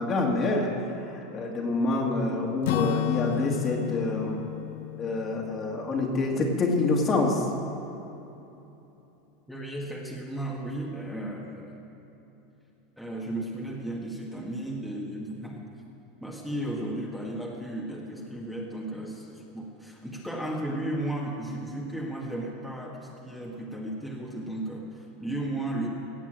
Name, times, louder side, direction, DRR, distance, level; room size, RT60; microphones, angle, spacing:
voice 1, 0.0-4.4 5.0-7.5, left 2 dB, 30° left, 0 dB, 2.2 m, -27 dB
Acoustic guitar / Strum, 2.6-6.6, left 15 dB, 75° left, 0.4 m, -33 dB
voice 2, 9.5-11.8 13.0-15.7 16.2-25.9, right 1 dB, ahead, -4 dB, 1.8 m, -34 dB
17.5 x 7.2 x 7.7 m, 3.0 s
supercardioid pair, 125°, 0 cm